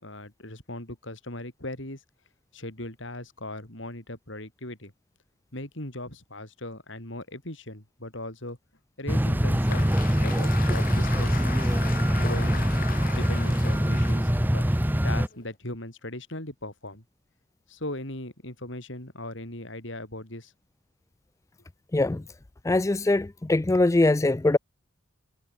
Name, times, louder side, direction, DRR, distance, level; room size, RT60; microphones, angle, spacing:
voice 1, 0.0-2.0 2.5-4.9 5.5-8.6 9.0-11.8 12.2-14.7 15.0-17.0 17.7-20.5, left 1 dB, 60° left, 5.4 m, -38 dB
sound 1, 9.1-15.3, equal, 10° right, 1.4 m, -24 dB
Applause, 9.2-15.5, left 6 dB, 45° left, 2.2 m, -40 dB
voice 2, 21.9-22.2 22.6-24.6, left 2 dB, 15° left, 0.3 m, -22 dB
head